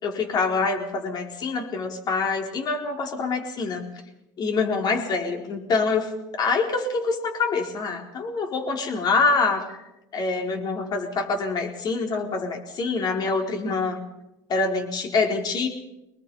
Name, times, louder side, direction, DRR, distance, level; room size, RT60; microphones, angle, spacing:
voice 1, 0.0-3.9 4.4-9.8 10.1-14.0 14.5-15.7, left 4 dB, 45° left, 3 dB, 4.5 m, -25 dB
24.5 x 20.0 x 5.6 m, 0.93 s
hypercardioid pair, 85°, 10 cm